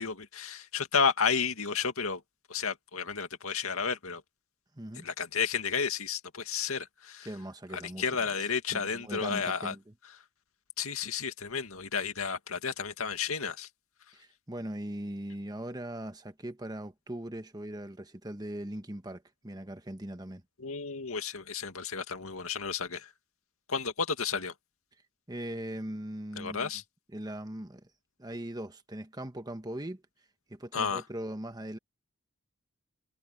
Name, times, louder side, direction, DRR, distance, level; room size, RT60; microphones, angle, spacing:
voice 1, 0.0-2.2 2.5-4.2 5.0-7.3 7.7-9.7 10.8-13.7 20.6-23.1 23.7-24.5 26.4-26.8 30.7-31.0, left 6 dB, 85° left, 2.3 m, -32 dB
voice 2, 7.2-8.3 8.7-9.9 14.1-20.4 25.3-26.7 27.1-27.9 28.2-30.0 30.5-31.8, right 1 dB, 20° right, 1.3 m, -40 dB
head